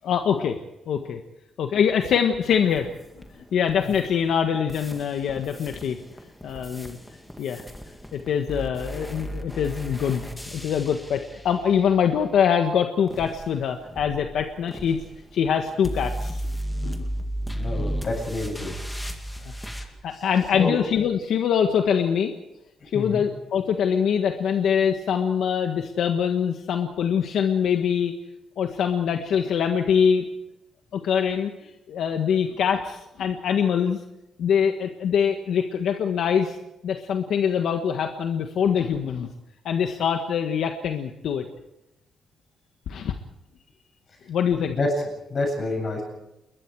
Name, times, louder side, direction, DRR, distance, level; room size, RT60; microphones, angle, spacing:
voice 1, 0.0-0.6 0.9-1.2 1.6-2.9 3.5-6.0 6.4-7.0 7.4-7.6 8.1-10.2 10.5-15.0 15.3-16.4 16.8-17.1 20.0-22.3 22.9-28.1 28.6-30.2 30.9-34.0 34.4-36.6 36.8-39.3 39.6-41.4 42.9-43.1 44.3-44.8, left 7 dB, 70° left, 5 dB, 1.6 m, -24 dB
sound 1, 2.5-4.4 4.7-12.4 13.1-19.9, equal, 5° left, 2.1 m, -35 dB
voice 2, 17.5-18.7 19.5-20.2 20.6-20.8 22.8-23.2 44.7-44.9 45.3-46.0, left 3 dB, 35° left, 1 dB, 7.8 m, -28 dB
29.5 x 21.5 x 4.8 m, 0.91 s
cardioid pair, 165°, 0 cm